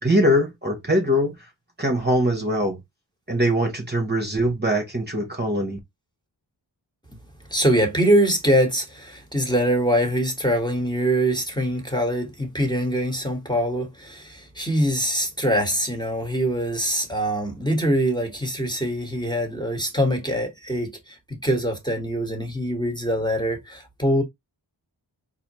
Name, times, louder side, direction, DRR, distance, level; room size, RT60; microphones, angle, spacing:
voice 1, 0.0-1.4 1.8-2.8 3.3-5.8, equal, 20° right, 1.1 m, -22 dB
voice 2, 7.5-24.2, equal, 10° left, 1.4 m, -23 dB
4.1 x 2.8 x 3.0 m
wide cardioid pair, 45°, 45 cm